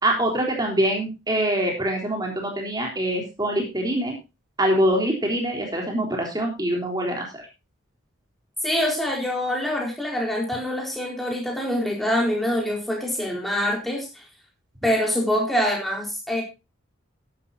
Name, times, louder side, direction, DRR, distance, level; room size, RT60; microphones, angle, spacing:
voice 1, 0.0-4.1 4.6-7.4, right 1 dB, 20° right, 1 dB, 3.7 m, -24 dB
voice 2, 8.6-14.3 14.8-16.4, equal, ahead, -1 dB, 4.2 m, -25 dB
13.0 x 12.0 x 2.8 m, 0.26 s
head